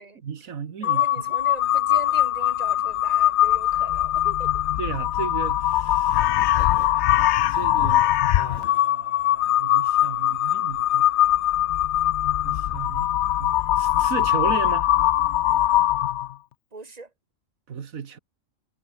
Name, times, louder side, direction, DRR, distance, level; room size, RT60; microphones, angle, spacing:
voice 1, 0.2-1.0 4.8-6.3 7.5-11.1 12.4-13.1 13.4-14.9 17.7-18.2, right 7 dB, 85° right, 1.8 m, -34 dB
Crow, 0.8-16.3, left 13 dB, 65° left, 0.8 m, -22 dB
voice 2, 0.8-4.6 16.7-17.1, right 3 dB, 30° right, 2.6 m, -41 dB
omnidirectional pair, 1.4 m